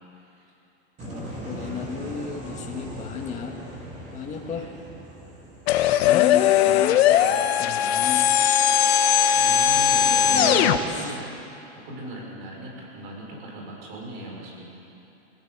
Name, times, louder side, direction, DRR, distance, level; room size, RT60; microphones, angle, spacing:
voice 1, 1.0-3.6 4.1-4.7 6.0-8.3 10.0-11.2, left 7 dB, 20° left, 1 dB, 2.0 m, -33 dB
sound 1, 1.0-6.9, right 1 dB, 20° right, 3.0 m, -39 dB
sound 2, 5.7-10.8, left 9 dB, 60° left, 1.5 m, -19 dB
voice 2, 9.3-11.2 11.7-14.7, right 1 dB, 55° right, -1 dB, 6.4 m, -38 dB
25.5 x 16.0 x 8.3 m, 2.9 s
supercardioid pair, 165°, 35 cm